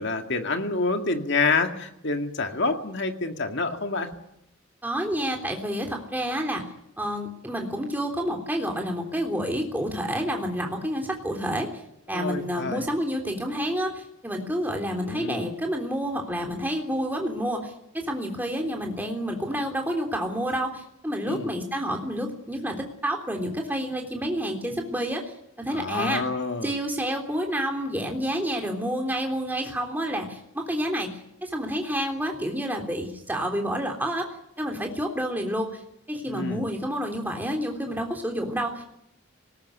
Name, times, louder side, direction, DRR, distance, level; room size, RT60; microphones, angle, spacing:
voice 1, 0.0-4.1 12.1-12.8 14.8-15.4 21.3-21.5 25.7-26.7 36.3-36.7, left 3 dB, 55° left, 5 dB, 2.2 m, -28 dB
voice 2, 4.8-6.6 7.0-11.7 12.1-25.2 25.6-26.2 26.6-34.3 34.6-35.8 36.1-38.8, equal, 10° right, 2 dB, 3.4 m, -29 dB
20.5 x 19.0 x 10.0 m, 0.79 s
head